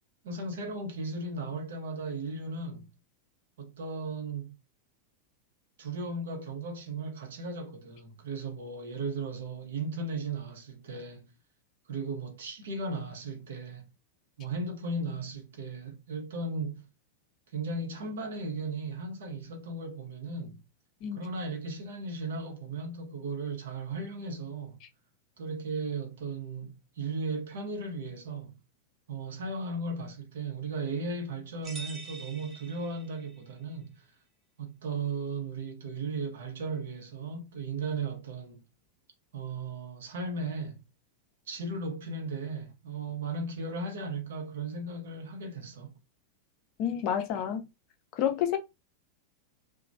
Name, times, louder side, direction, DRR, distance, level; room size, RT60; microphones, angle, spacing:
voice 1, 0.2-2.9 3.6-4.6 5.8-11.3 11.9-13.9 14.4-16.8 17.5-20.6 21.1-24.8 25.4-28.5 29.1-34.0 34.6-38.6 39.3-40.8 41.5-45.9, right 3 dB, 60° right, 0.8 m, -36 dB
voice 2, 21.0-21.3 46.8-47.6 48.1-48.6, left 9 dB, 40° left, 0.5 m, -29 dB
sound 1, 31.6-33.5, right 3 dB, 20° right, 0.9 m, -45 dB
2.9 x 2.1 x 2.6 m
figure-of-eight pair, 90°, 0 cm